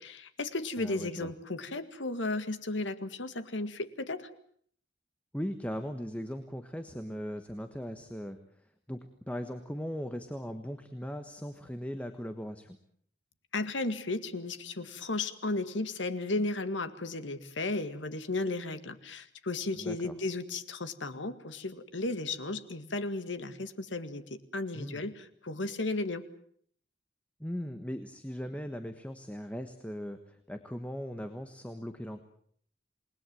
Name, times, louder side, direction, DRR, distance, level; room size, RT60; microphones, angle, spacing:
voice 1, 0.0-4.3 13.5-26.2, left 2 dB, 80° left, 10 dB, 2.0 m, -34 dB
voice 2, 0.8-1.3 5.3-8.4 8.9-9.0 9.3-12.8 19.8-20.1 24.7-25.0 27.4-32.2, equal, 5° left, 8 dB, 1.3 m, -39 dB
28.5 x 20.5 x 7.8 m, 0.62 s
head